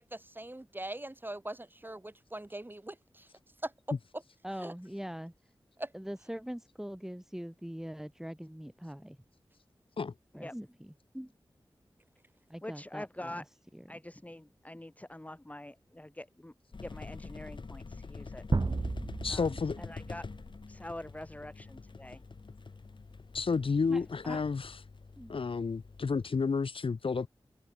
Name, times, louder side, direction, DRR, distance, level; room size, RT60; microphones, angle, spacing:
voice 1, 0.0-3.3 3.6-3.7 4.6-4.7 5.8-5.9, right 1 dB, 20° right, 7.4 m, -41 dB
voice 2, 4.4-5.3 5.9-9.2 10.3-11.3 12.5-13.3 23.9-24.4 25.2-25.3, equal, 5° right, 2.5 m, -42 dB
voice 3, 12.6-13.5 13.9-16.5 16.8-18.4 19.3-20.3 20.7-22.2, left 1 dB, 15° left, 2.4 m, -45 dB
sound 1, 16.7-26.3, left 4 dB, 60° left, 2.3 m, -46 dB
sound 2, 18.5-20.5, right 3 dB, 55° right, 3.4 m, -33 dB
voice 4, 19.2-19.8 23.3-24.8 25.3-27.3, left 5 dB, 80° left, 3.2 m, -31 dB
wide cardioid pair, 60°, 9 cm